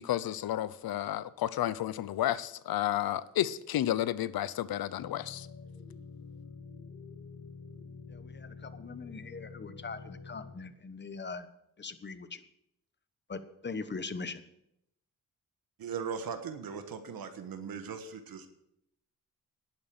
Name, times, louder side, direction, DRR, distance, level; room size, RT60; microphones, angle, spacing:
voice 1, 0.0-5.5, left 12 dB, 85° left, 18 dB, 0.7 m, -31 dB
sound 1, 5.0-10.5, left 5 dB, 55° left, 2.7 m, -47 dB
voice 2, 8.1-11.5 11.8-12.4 13.3-14.4, left 4 dB, 30° left, 12 dB, 1.1 m, -41 dB
voice 3, 15.8-18.5, right 6 dB, 80° right, 8 dB, 1.4 m, -39 dB
11.0 x 8.9 x 6.7 m, 0.80 s
cardioid pair, 85°, 35 cm